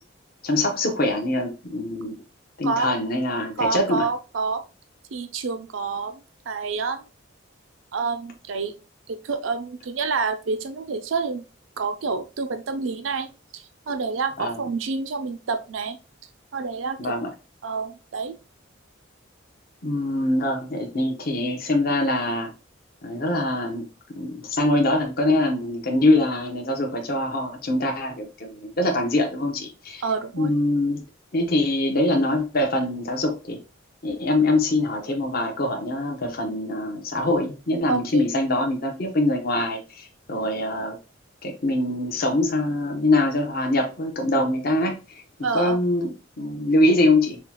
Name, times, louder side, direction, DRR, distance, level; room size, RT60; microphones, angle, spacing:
voice 1, 0.4-2.2 2.6-4.1 14.4-14.7 17.0-17.3 19.8-22.5 23.0-23.8 24.2-30.0 30.3-31.0 31.3-33.6 34.0-41.0 41.4-45.2 45.5-47.4, left 1 dB, 50° left, 2 dB, 1.0 m, -23 dB
voice 2, 2.6-2.9 3.6-4.6 5.1-6.2 6.5-7.0 7.9-8.7 9.1-11.5 11.8-13.3 13.5-16.0 16.5-17.2 17.6-18.3 30.0-30.5 37.9-38.2 45.4-45.8, right 4 dB, 75° right, 8 dB, 0.5 m, -28 dB
6.3 x 2.4 x 2.9 m, 0.32 s
head